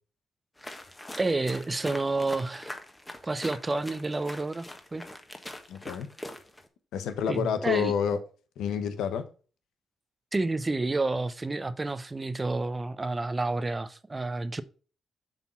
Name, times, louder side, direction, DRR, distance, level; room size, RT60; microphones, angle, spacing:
sound 1, 0.6-6.7, left 1 dB, 15° left, 1.5 m, -43 dB
voice 1, 1.2-2.8 3.2-4.7 4.9-5.0 7.3-7.9 10.3-14.6, right 2 dB, 30° right, 0.7 m, -29 dB
voice 2, 5.7-6.1 6.9-8.2 8.6-9.2, left 7 dB, 80° left, 0.8 m, -28 dB
7.1 x 4.0 x 5.7 m
supercardioid pair, 50°, 0 cm